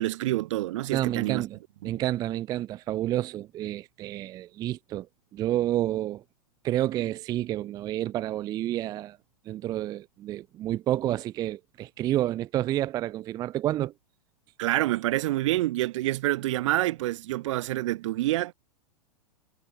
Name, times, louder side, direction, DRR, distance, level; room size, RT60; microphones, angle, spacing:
voice 1, 0.0-1.4 1.8-1.9 14.6-18.5, right 16 dB, 55° right, 1.2 m, -27 dB
voice 2, 0.9-1.6 1.8-5.1 5.3-6.2 6.6-9.2 9.5-13.9, right 13 dB, 20° right, 0.4 m, -29 dB
figure-of-eight pair, 100°, 19 cm